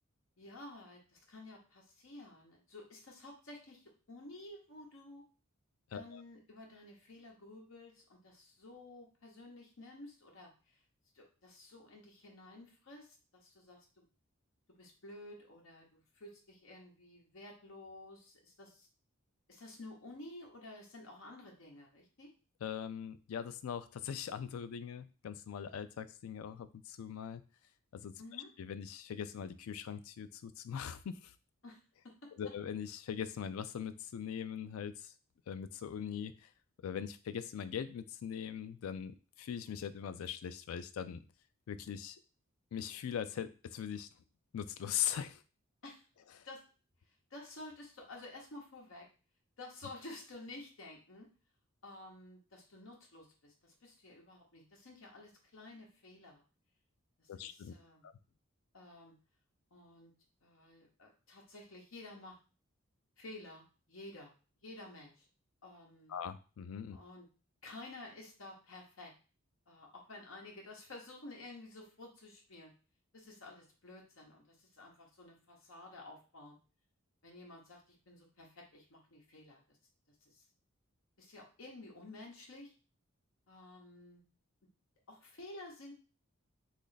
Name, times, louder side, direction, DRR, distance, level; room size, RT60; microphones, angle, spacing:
voice 1, 0.4-5.2 5.9-10.8 11.1-14.1 14.8-18.9 19.5-22.3 28.2-28.5 31.6-31.8 32.0-32.5 45.8-46.0 46.4-46.6 47.3-49.1 49.6-51.3 51.8-56.4 57.2-58.0 58.7-59.1 59.7-60.1 60.4-62.4 63.2-64.3 64.6-65.2 65.6-66.1 66.9-67.3 67.6-69.1 69.7-72.7 73.1-76.6 77.2-79.6 80.2-80.4 81.2-82.7 83.5-84.2 85.1-86.0, left 2 dB, 70° left, -1 dB, 0.9 m, -52 dB
voice 2, 5.9-6.2 22.6-27.4 27.9-28.1 28.6-31.3 32.4-35.1 35.5-36.5 36.8-41.2 41.7-42.2 42.7-44.1 44.5-45.4 46.4-46.5 57.3-57.7 58.0-58.1 66.1-67.0, left 8 dB, 85° left, 12 dB, 0.3 m, -41 dB
3.1 x 2.4 x 3.9 m, 0.35 s
head